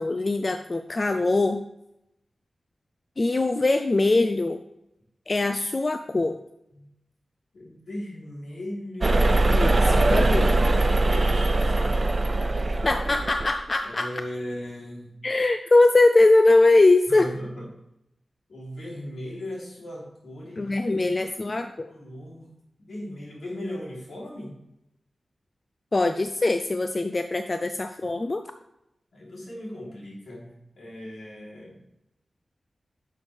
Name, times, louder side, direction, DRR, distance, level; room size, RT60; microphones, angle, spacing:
voice 1, 0.0-1.6 3.2-4.6 5.3-6.4 9.5-10.7 12.8-14.1 15.2-17.3 20.6-21.9 25.9-28.4, left 2 dB, 40° left, 8 dB, 0.5 m, -22 dB
voice 2, 7.5-9.4 11.1-12.0 13.8-15.2 17.1-17.6 18.5-21.0 21.5-22.5 22.8-24.6 29.1-31.8, left 1 dB, 80° left, -3 dB, 3.2 m, -38 dB
sound 1, 9.0-13.5, right 2 dB, 40° right, 0.5 m, -21 dB
10.5 x 6.6 x 3.4 m, 0.85 s
wide cardioid pair, 70°, 0 cm